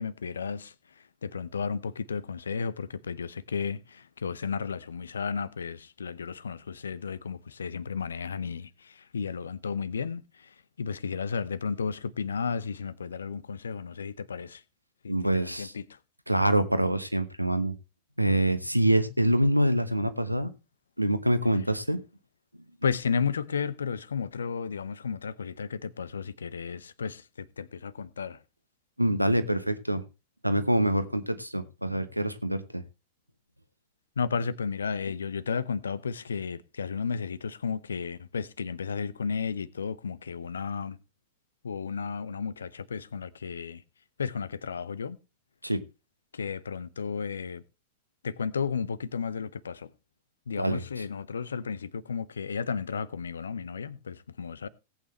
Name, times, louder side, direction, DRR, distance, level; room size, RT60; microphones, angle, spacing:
voice 1, 0.0-14.6 15.0-16.0 22.8-28.4 34.2-41.0 41.6-43.8 44.2-45.2 46.3-47.6 48.2-49.9 50.5-54.7, left 5 dB, 70° left, 0.7 m, -33 dB
voice 2, 15.1-15.7 16.3-17.7 18.2-20.5 21.0-22.0 29.0-30.0 30.4-32.8 45.6-45.8 50.6-50.8, right 1 dB, 90° right, 1.1 m, -25 dB
18.0 x 8.6 x 3.2 m
figure-of-eight pair, 90°, 0 cm